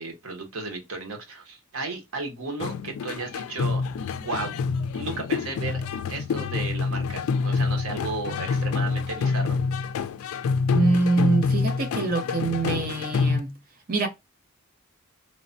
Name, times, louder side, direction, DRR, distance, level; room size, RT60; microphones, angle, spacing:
voice 1, 0.0-3.8 4.2-4.5 4.9-5.8 6.1-9.6, right 3 dB, 75° right, 0.9 m, -34 dB
sound 1, 2.6-13.4, left 4 dB, 80° left, 0.3 m, -27 dB
voice 2, 10.7-13.6 13.9-14.1, right 3 dB, 40° right, 0.7 m, -24 dB
3.1 x 2.1 x 2.6 m
head